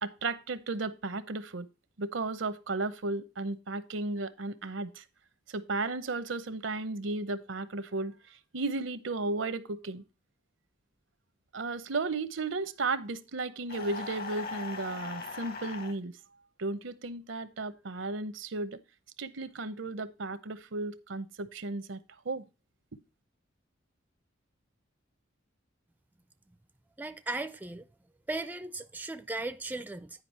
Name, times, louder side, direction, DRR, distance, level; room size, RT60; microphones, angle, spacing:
voice 1, 0.0-1.7 2.0-5.0 5.5-8.1 8.5-10.0 11.5-16.1 16.6-18.8 19.2-22.0 22.2-22.4, right 3 dB, 80° right, 0.8 m, -34 dB
sound 1, 13.7-15.9, left 4 dB, 55° left, 1.4 m, -39 dB
voice 2, 27.0-27.9 28.3-30.2, right 2 dB, 10° right, 0.4 m, -37 dB
9.7 x 5.0 x 4.2 m
head